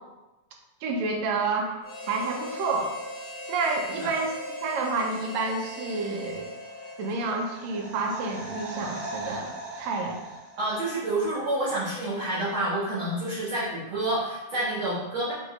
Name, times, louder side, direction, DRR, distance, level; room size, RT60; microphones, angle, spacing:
voice 1, 0.8-3.0 3.5-6.5 7.0-10.2, right 3 dB, 80° right, 1 dB, 1.6 m, -29 dB
Harmonica, 1.8-7.6, left 1 dB, 60° left, 0.9 m, -39 dB
sound 1, 6.5-11.3 11.6-11.7, right 1 dB, 45° right, 1.8 m, -40 dB
voice 2, 10.6-15.3, right 1 dB, 65° right, -9 dB, 1.3 m, -28 dB
6.6 x 2.5 x 3.1 m, 1.1 s
omnidirectional pair, 3.6 m